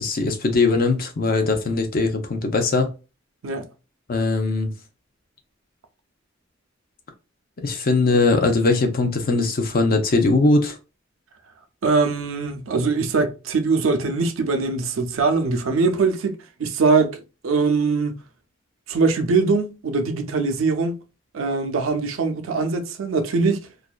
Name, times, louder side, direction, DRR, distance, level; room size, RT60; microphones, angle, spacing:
voice 1, 0.0-2.9 4.1-4.7 7.6-10.8, left 3 dB, 50° left, 0.5 m, -20 dB
voice 2, 11.8-16.3 16.6-18.1 18.9-21.0 21.3-23.7, right 4 dB, 85° right, 0.5 m, -22 dB
2.5 x 2.2 x 2.3 m
head